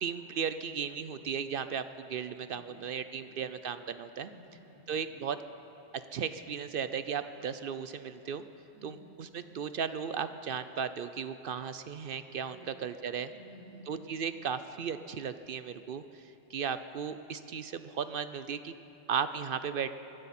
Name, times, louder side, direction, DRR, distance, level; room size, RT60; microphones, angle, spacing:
voice 1, 0.0-4.3 4.9-5.4 5.9-8.4 8.8-13.3 13.9-18.7 19.1-20.0, right 7 dB, 60° right, 11 dB, 0.6 m, -36 dB
voice 2, 2.4-2.8 3.1-3.5 4.2-5.0 8.7-9.0 12.4-12.7 13.3-13.9, equal, 70° left, -11 dB, 5.7 m, -55 dB
24.0 x 14.0 x 4.2 m, 2.8 s
omnidirectional pair, 1.2 m